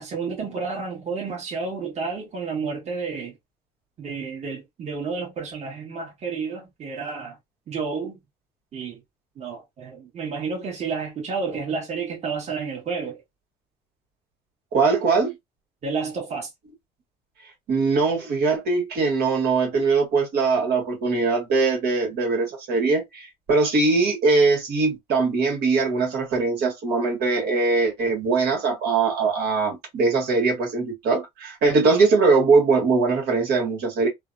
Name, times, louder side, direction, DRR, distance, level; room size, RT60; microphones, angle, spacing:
voice 1, 0.0-3.4 4.0-7.4 7.7-8.2 8.7-9.0 9.4-13.2 15.8-16.5, right 5 dB, 40° right, 1.4 m, -30 dB
voice 2, 14.7-15.3 17.7-34.1, right 4 dB, 70° right, 1.5 m, -21 dB
3.3 x 2.1 x 2.5 m
cardioid pair, 110°, 17 cm